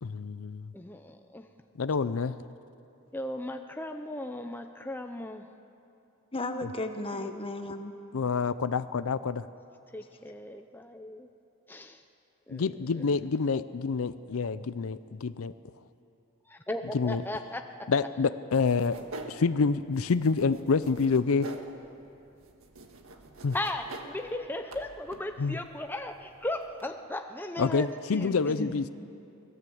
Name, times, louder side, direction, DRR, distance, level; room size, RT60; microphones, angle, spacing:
voice 1, 0.0-0.7 1.8-2.4 8.1-9.4 12.5-15.5 16.9-17.2 17.9-19.0 19.3-21.5 23.4-23.5 25.4-25.6 27.6-28.8, left 4 dB, 70° left, 13 dB, 0.5 m, -27 dB
voice 2, 0.7-1.5 3.1-5.5 7.1-7.3 9.9-11.3 11.7-12.0 12.5-12.7 12.9-13.2 16.5-17.7 23.5-28.7, left 1 dB, 10° left, 5 dB, 0.6 m, -37 dB
voice 3, 6.3-7.9 28.6-28.9, left 2 dB, 25° left, 7 dB, 1.2 m, -34 dB
sound 1, 18.5-26.9, right 2 dB, 70° right, 1.7 m, -47 dB
25.0 x 18.0 x 7.9 m, 2.8 s
head